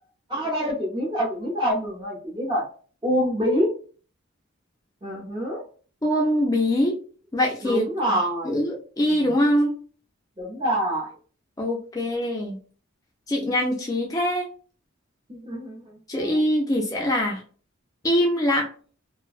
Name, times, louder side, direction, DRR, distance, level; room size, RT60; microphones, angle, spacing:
voice 1, 0.3-2.6 3.0-3.7 5.0-5.6 7.6-8.6 9.1-9.3 10.4-11.1 15.3-15.8 16.1-16.3, equal, 25° right, -6 dB, 0.6 m, -26 dB
voice 2, 6.0-7.0 7.3-7.8 8.4-9.7 11.6-12.6 13.3-14.5 16.1-17.4 18.0-18.7, left 1 dB, 15° left, 0 dB, 0.3 m, -23 dB
2.5 x 2.1 x 2.3 m, 0.40 s
head